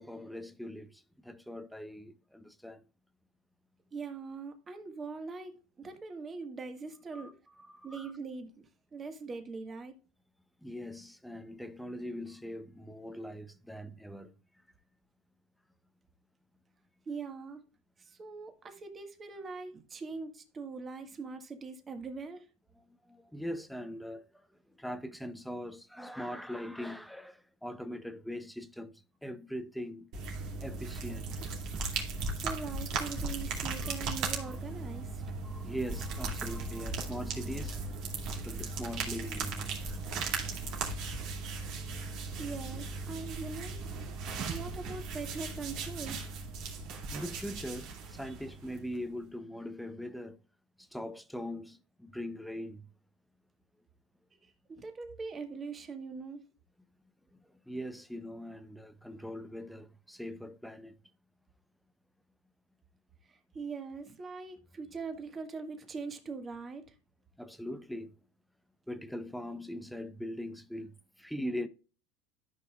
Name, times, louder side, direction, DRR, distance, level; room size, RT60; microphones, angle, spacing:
voice 1, 0.0-2.8 7.1-8.1 10.6-14.3 22.8-30.1 30.6-31.3 33.8-34.0 34.3-34.6 35.4-37.8 38.3-39.8 40.4-40.5 47.1-50.4 50.8-52.9 57.4-61.0 67.4-68.2 68.9-71.7, equal, ahead, 0.8 m, -41 dB
voice 2, 3.9-7.3 7.8-9.9 17.0-17.6 18.0-22.5 32.3-35.3 42.4-43.8 44.5-46.2 54.3-56.4 63.3-66.9, right 4 dB, 25° right, 1.7 m, -42 dB
sound 1, 30.1-49.0, right 3 dB, 55° right, 2.4 m, -37 dB
13.0 x 5.6 x 2.4 m
supercardioid pair, 105°, 0 cm